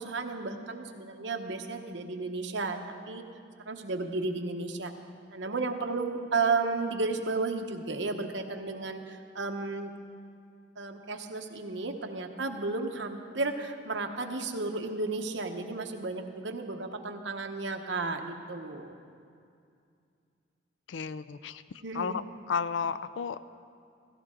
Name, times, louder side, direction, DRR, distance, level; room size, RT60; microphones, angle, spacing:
voice 1, 0.0-2.8 3.1-3.2 3.7-4.9 5.3-9.9 10.8-19.0 21.8-22.2, right 3 dB, 75° right, 4 dB, 1.0 m, -33 dB
voice 2, 20.9-21.6 21.9-23.5, left 6 dB, 80° left, 15 dB, 0.4 m, -33 dB
16.5 x 16.0 x 3.8 m, 2.4 s
head